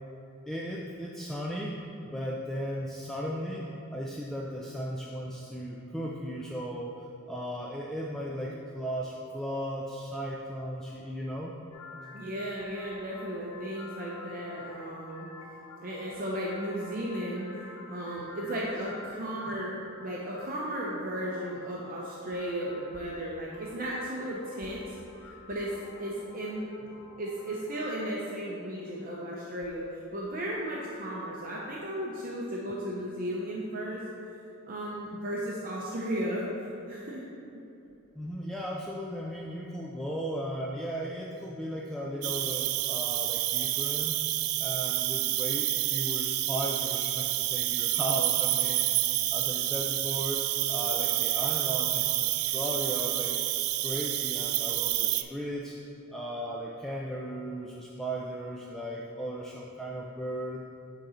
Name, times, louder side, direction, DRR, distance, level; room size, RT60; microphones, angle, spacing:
voice 1, 0.5-11.6 19.5-19.6 38.1-44.2 44.6-53.3 53.8-60.6, equal, ahead, -3 dB, 0.3 m, -36 dB
sound 1, 11.7-28.5, left 3 dB, 85° left, 1.6 m, -49 dB
voice 2, 12.1-15.3 15.8-17.6 17.9-25.0 25.2-26.6 27.2-34.0 34.7-37.3, equal, 40° right, -4 dB, 0.7 m, -35 dB
Cricket, 42.2-55.2, right 15 dB, 75° right, 0.3 m, -29 dB
9.0 x 3.8 x 4.3 m, 2.8 s
head